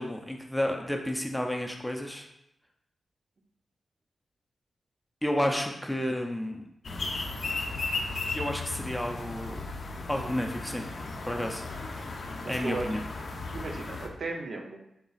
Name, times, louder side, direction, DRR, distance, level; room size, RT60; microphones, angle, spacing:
voice 1, 0.0-2.2 5.2-6.6 8.3-9.6 10.1-10.8 11.2-11.6 12.5-13.0, left 1 dB, 5° left, 2 dB, 0.4 m, -31 dB
sound 1, 6.8-14.1, left 3 dB, 60° left, 0.5 m, -35 dB
voice 2, 12.4-12.9 13.5-14.8, right 3 dB, 60° right, 1 dB, 0.5 m, -36 dB
3.8 x 2.3 x 4.0 m, 0.81 s
wide cardioid pair, 110°, 0 cm